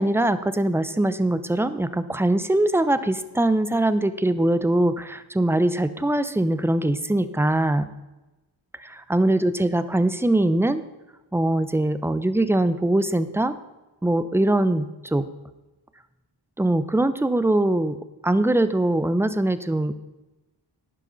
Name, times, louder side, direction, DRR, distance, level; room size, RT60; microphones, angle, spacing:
voice 1, 0.0-7.9 8.9-10.8 11.3-13.6 14.0-15.3 16.6-18.0 18.2-19.9, right 1 dB, 5° right, 12 dB, 0.6 m, -22 dB
11.5 x 9.8 x 4.0 m, 1.1 s
cardioid pair, 70°, 46 cm